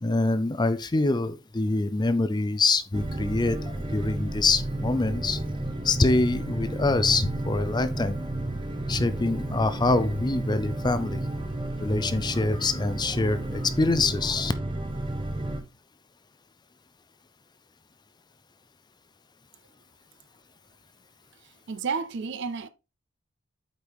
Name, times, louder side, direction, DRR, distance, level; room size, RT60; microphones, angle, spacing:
voice 1, 0.0-5.4 5.8-8.2 8.9-11.2 11.8-14.5, left 3 dB, 20° left, 0.5 m, -25 dB
sound 1, 2.9-15.6, right 1 dB, 25° right, 0.8 m, -32 dB
voice 2, 21.4-22.7, right 5 dB, 60° right, 0.5 m, -32 dB
8.2 x 4.7 x 3.4 m
head